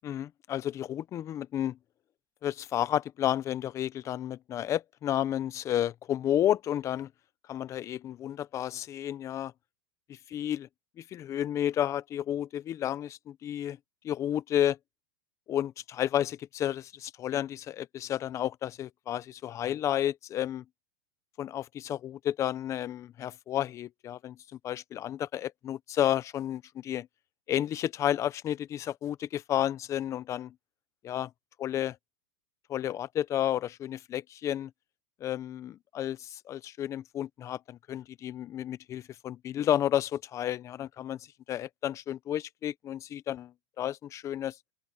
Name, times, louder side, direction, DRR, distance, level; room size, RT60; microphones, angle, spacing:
voice 1, 0.0-1.8 2.4-7.1 7.5-9.5 10.3-10.7 11.0-13.8 14.0-14.8 15.5-20.6 21.4-24.4 24.6-27.1 27.5-30.5 31.0-31.3 31.6-32.0 32.7-34.7 35.2-43.5 43.8-44.6, left 11 dB, 25° left, 0.7 m, -31 dB
open air
supercardioid pair, 150°, 12 cm